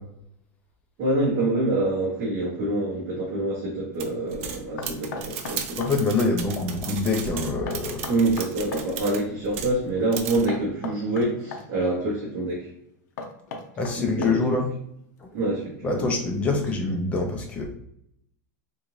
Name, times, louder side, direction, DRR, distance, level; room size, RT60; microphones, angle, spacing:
voice 1, 1.0-5.8 8.1-12.7 13.9-14.6 15.3-16.1 16.4-16.6, right 2 dB, 30° right, -7 dB, 0.9 m, -26 dB
sound 1, 4.0-9.8 10.1-10.5, right 7 dB, 45° right, 0.4 m, -35 dB
Knock, 4.8-6.0 7.7-8.9 10.5-11.7 13.2-14.6, left 3 dB, 70° left, 0.6 m, -36 dB
voice 2, 5.8-8.1 13.8-14.7 15.2-15.3 15.8-17.6, left 3 dB, 15° left, 2 dB, 0.4 m, -25 dB
3.7 x 2.5 x 3.0 m, 0.73 s
supercardioid pair, 180°, 10 cm